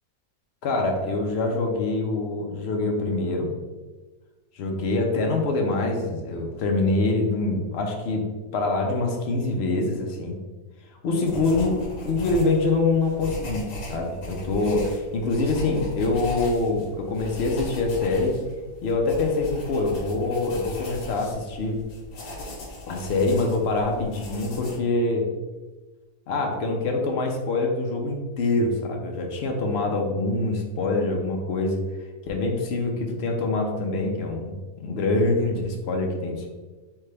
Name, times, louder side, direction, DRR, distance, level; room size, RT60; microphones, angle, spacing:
voice 1, 0.6-3.5 4.5-8.2 8.5-10.4 10.9-13.6 13.9-18.4 18.8-21.8 22.9-25.2 26.3-31.8 32.2-36.5, left 2 dB, 60° left, 1 dB, 0.7 m, -25 dB
sound 1, 11.2-24.8, left 1 dB, 80° left, 1.5 m, -38 dB
3.8 x 3.4 x 3.3 m, 1.3 s
omnidirectional pair, 1.8 m